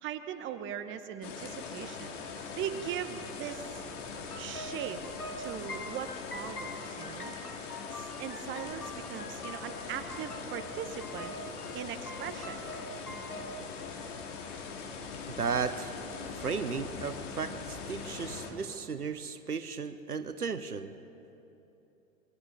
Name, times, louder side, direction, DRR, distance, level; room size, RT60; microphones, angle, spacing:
voice 1, 0.0-3.8 4.4-5.0 5.4-7.3 7.8-11.3 11.7-12.6, right 9 dB, 25° right, 9 dB, 1.1 m, -40 dB
sound 1, 1.2-18.5, left 5 dB, 55° left, 2.5 m, -42 dB
sound 2, 4.3-13.6, left 1 dB, 85° left, 1.8 m, -44 dB
voice 2, 15.3-15.9 16.4-21.0, right 5 dB, 85° right, 12 dB, 0.9 m, -35 dB
27.0 x 23.0 x 4.2 m, 3.0 s
figure-of-eight pair, 90°, 44 cm